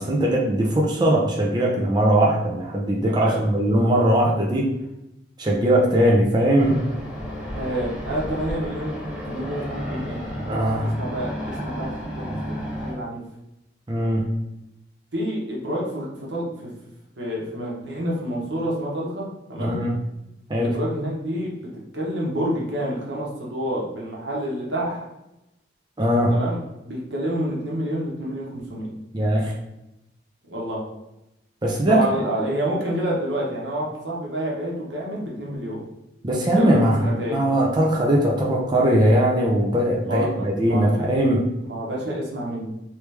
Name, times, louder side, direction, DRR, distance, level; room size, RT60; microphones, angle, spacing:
voice 1, 0.0-4.7 5.4-6.8 10.4-11.0 13.9-14.2 19.6-20.0 20.5-20.7 26.0-26.3 29.1-29.5 31.6-32.0 36.2-37.0 37.3-41.4, right 1 dB, 25° right, -3 dB, 0.5 m, -20 dB
voice 2, 3.1-3.4 7.5-10.2 10.8-11.9 12.1-12.4 12.7-13.2 15.1-16.7 17.2-19.8 20.6-25.0 26.3-28.9 30.5-30.8 31.9-35.8 36.5-37.4 40.0-40.9 41.6-42.7, right 1 dB, 85° right, -4 dB, 1.2 m, -28 dB
sound 1, 6.6-12.9, equal, 5° right, 1.0 m, -32 dB
3.2 x 3.1 x 3.3 m, 0.91 s
head